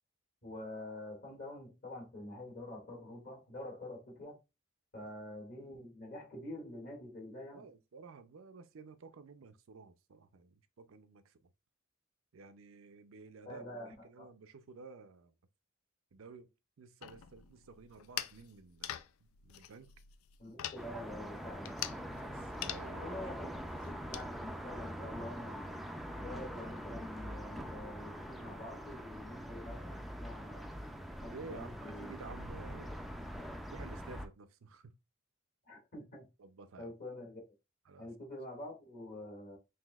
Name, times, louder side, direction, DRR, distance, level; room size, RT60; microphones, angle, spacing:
voice 1, 0.4-4.4 4.9-7.7 13.4-14.3 20.4-22.2 23.0-23.6 23.8-25.8 26.2-30.7 31.2-32.1 32.8-32.9 35.7-36.3 36.8-37.4 38.0-39.6, left 1 dB, 45° left, 1.9 m, -47 dB
voice 2, 7.5-11.3 12.3-13.6 14.0-15.4 16.1-16.5 16.8-18.9 19.2-19.9 22.2-23.2 31.3-32.9 33.7-34.9 36.4-36.9 37.9-38.1, right 4 dB, 70° right, 0.5 m, -52 dB
sound 1, 17.0-24.3, left 11 dB, 85° left, 0.3 m, -45 dB
sound 2, 20.8-34.3, equal, ahead, 0.3 m, -44 dB
5.8 x 2.7 x 2.3 m
head